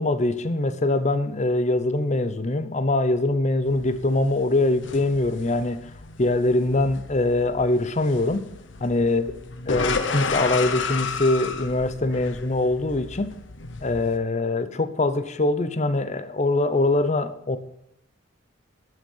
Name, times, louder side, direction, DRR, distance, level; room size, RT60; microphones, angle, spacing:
voice 1, 0.0-5.9 6.2-8.5 8.8-9.3 9.7-13.3 13.8-17.6, left 2 dB, 35° left, 0.8 m, -23 dB
sound 1, 3.7-14.2, left 4 dB, 70° left, 0.9 m, -33 dB
11.5 x 6.5 x 5.5 m
head